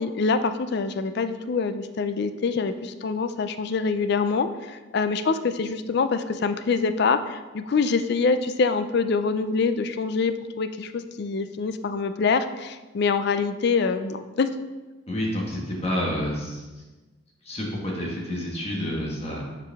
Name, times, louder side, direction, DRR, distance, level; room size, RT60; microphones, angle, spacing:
voice 1, 0.0-14.5, left 4 dB, 55° left, 10 dB, 0.4 m, -25 dB
voice 2, 15.1-16.6 17.4-19.4, left 1 dB, 30° left, -2 dB, 1.4 m, -29 dB
9.6 x 4.8 x 3.5 m, 1.2 s
head